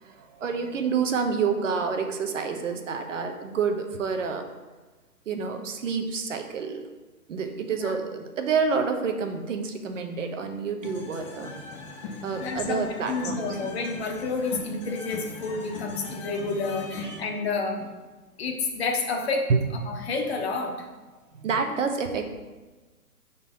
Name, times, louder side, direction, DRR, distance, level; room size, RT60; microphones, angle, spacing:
voice 1, 0.0-4.4 5.3-6.8 7.3-11.5 12.2-13.6 16.9-17.2 19.5-19.6 21.4-22.2, right 5 dB, 55° right, 5 dB, 0.8 m, -28 dB
sound 1, 10.8-17.2, left 3 dB, 20° left, 0.6 m, -39 dB
voice 2, 12.4-17.9 18.4-19.5 19.9-20.9, left 3 dB, 45° left, 2 dB, 1.0 m, -30 dB
5.5 x 4.0 x 5.5 m, 1.2 s
hypercardioid pair, 140°, 45 cm